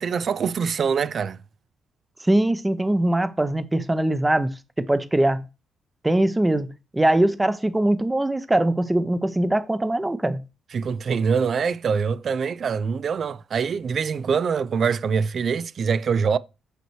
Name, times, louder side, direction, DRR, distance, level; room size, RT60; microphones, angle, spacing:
voice 1, 0.0-1.4 10.7-16.4, right 6 dB, 50° right, 0.4 m, -24 dB
voice 2, 2.2-5.4 6.0-6.7 6.9-10.4, right 1 dB, 15° right, 0.7 m, -22 dB
8.0 x 3.1 x 4.6 m
cardioid pair, 90°, 0 cm